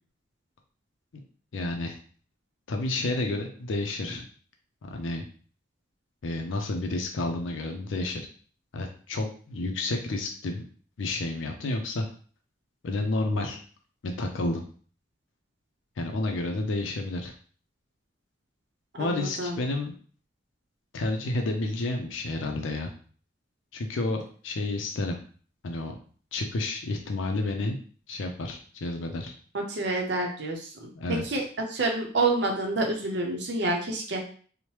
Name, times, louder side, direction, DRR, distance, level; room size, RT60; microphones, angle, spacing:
voice 1, 1.5-2.0 2.7-4.2 4.8-5.2 6.2-8.2 8.7-10.6 11.0-12.1 12.8-13.6 14.0-14.6 16.0-17.3 19.0-19.9 20.9-22.9 23.7-25.2 25.6-26.0 26.3-27.8 28.1-29.3 31.0-31.2, left 2 dB, 85° left, 3 dB, 0.4 m, -30 dB
voice 2, 19.0-19.6 29.5-31.4 31.7-34.2, right 2 dB, 65° right, 1 dB, 0.6 m, -28 dB
3.1 x 2.1 x 2.9 m, 0.44 s
head